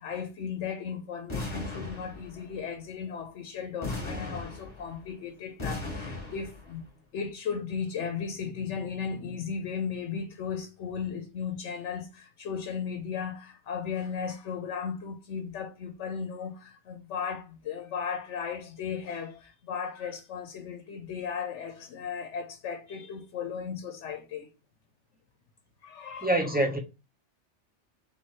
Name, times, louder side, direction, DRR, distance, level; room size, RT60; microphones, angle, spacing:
voice 1, 0.0-6.9 7.1-24.5 25.8-26.4, left 6 dB, 85° left, 1.0 m, -36 dB
sound 1, 1.3-2.6 3.8-5.1 5.6-6.7, left 2 dB, 25° left, 1.3 m, -37 dB
voice 2, 26.2-26.8, right 1 dB, 10° right, 0.6 m, -25 dB
3.6 x 3.0 x 4.5 m
omnidirectional pair, 1.2 m